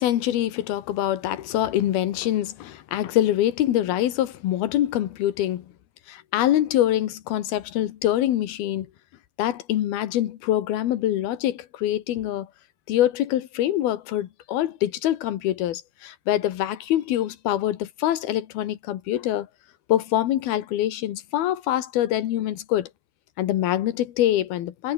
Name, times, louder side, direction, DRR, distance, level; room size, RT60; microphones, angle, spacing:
voice 1, 0.0-5.7 6.1-8.9 9.4-12.5 12.9-19.5 19.9-22.9 23.4-24.9, left 13 dB, 85° left, 3.4 m, -24 dB
omnidirectional pair, 4.3 m